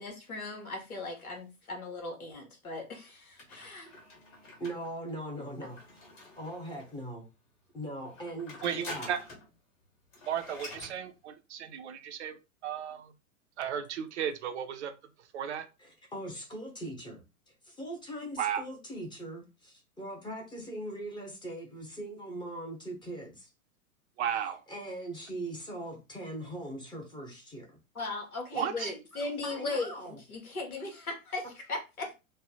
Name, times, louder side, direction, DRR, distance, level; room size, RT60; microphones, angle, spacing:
voice 1, 0.0-4.0 27.9-32.1, left 3 dB, 80° left, 1.2 m, -38 dB
sound 1, 3.4-7.0 8.0-9.5 9.8-9.9 10.1-11.0, left 2 dB, 30° left, 1.5 m, -47 dB
voice 2, 4.6-6.0 6.4-7.3 7.7-9.1 15.8-23.5 24.7-27.8 29.4-30.2, right 1 dB, 10° left, 0.8 m, -40 dB
voice 3, 8.6-9.2 10.3-13.1 13.6-14.9 15.2-15.7 18.4-18.6 24.2-24.6 28.5-28.9, right 9 dB, 55° right, 0.6 m, -34 dB
3.2 x 2.1 x 3.8 m
figure-of-eight pair, 105°, 43 cm